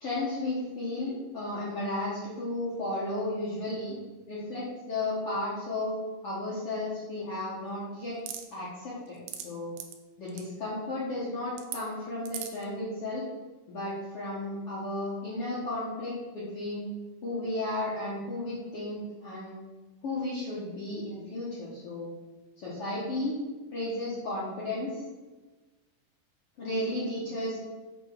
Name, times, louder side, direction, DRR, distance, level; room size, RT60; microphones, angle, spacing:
voice 1, 0.0-3.9 4.3-5.9 6.2-8.2 8.5-9.7 10.2-13.3 13.7-16.8 17.2-19.6 20.0-22.1 22.6-23.4 23.7-25.0 26.6-27.6, left 2 dB, 80° left, -7 dB, 1.3 m, -34 dB
sound 1, 8.3-8.4 9.1-9.4 9.8-9.9 10.3-10.4 11.6-11.8 12.3-12.6, right 10 dB, 80° right, 2.6 m, -37 dB
8.6 x 3.1 x 6.0 m, 1.2 s
omnidirectional pair, 4.7 m